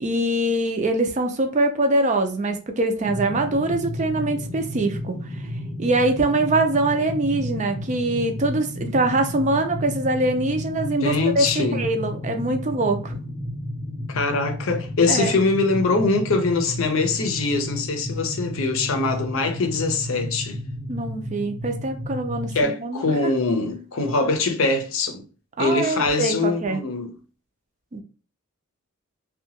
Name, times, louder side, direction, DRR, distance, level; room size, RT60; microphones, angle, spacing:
voice 1, 0.0-5.2 5.8-13.2 15.1-15.3 20.9-23.3 25.6-26.8 27.9-28.0, right 2 dB, 35° right, 0.4 m, -23 dB
sound 1, 3.0-22.6, left 1 dB, 5° left, 0.6 m, -32 dB
voice 2, 10.8-11.8 14.1-20.6 22.5-25.2 25.6-27.1, left 3 dB, 70° left, 0.6 m, -23 dB
2.7 x 2.2 x 2.8 m
head